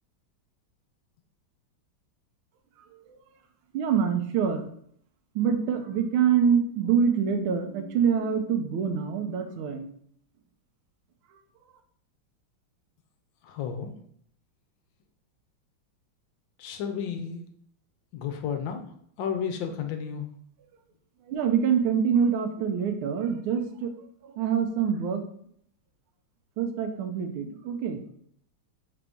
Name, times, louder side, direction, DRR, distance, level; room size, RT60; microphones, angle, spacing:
voice 1, 3.7-4.7 5.3-10.0 21.2-25.2 26.6-28.0, right 7 dB, 85° right, 6 dB, 1.5 m, -26 dB
voice 2, 13.4-13.9 16.6-17.4 18.1-18.8 19.2-20.3, left 7 dB, 75° left, 6 dB, 1.2 m, -32 dB
5.8 x 2.6 x 3.4 m, 0.66 s
omnidirectional pair, 2.3 m